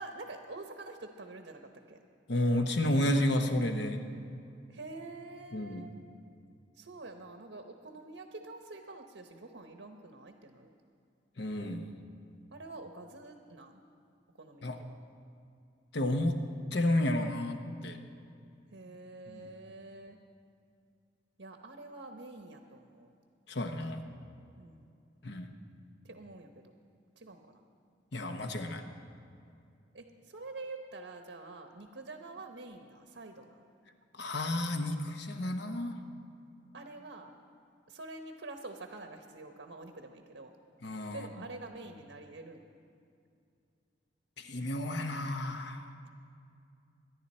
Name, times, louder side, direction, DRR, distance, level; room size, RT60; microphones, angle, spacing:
voice 1, 0.0-1.6 1.9-2.0 4.7-5.9 6.8-10.7 12.5-13.8 14.4-15.0 18.7-20.2 21.4-23.1 24.6-24.9 26.0-26.7 27.2-27.6 29.9-33.6 36.7-37.3 37.9-40.5 41.1-42.6, right 2 dB, 80° right, 5 dB, 1.0 m, -47 dB
voice 2, 2.3-4.0 5.5-5.9 11.4-11.9 14.6-14.8 15.9-16.4 16.7-18.0 19.3-19.5 23.5-24.0 25.2-25.5 28.1-28.9 34.1-36.0 40.8-41.3 44.4-45.9, left 1 dB, 65° left, 6 dB, 1.1 m, -31 dB
24.5 x 10.5 x 4.3 m, 2.5 s
head